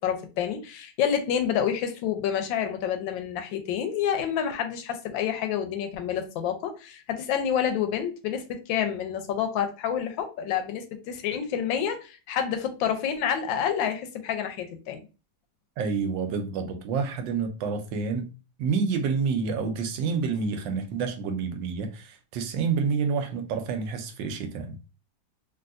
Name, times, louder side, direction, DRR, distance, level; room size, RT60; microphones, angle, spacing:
voice 1, 0.0-15.0, left 8 dB, 90° left, 1.4 m, -28 dB
voice 2, 15.8-18.3 18.6-24.9, right 5 dB, 80° right, 1.3 m, -28 dB
3.3 x 2.7 x 2.5 m
omnidirectional pair, 2.0 m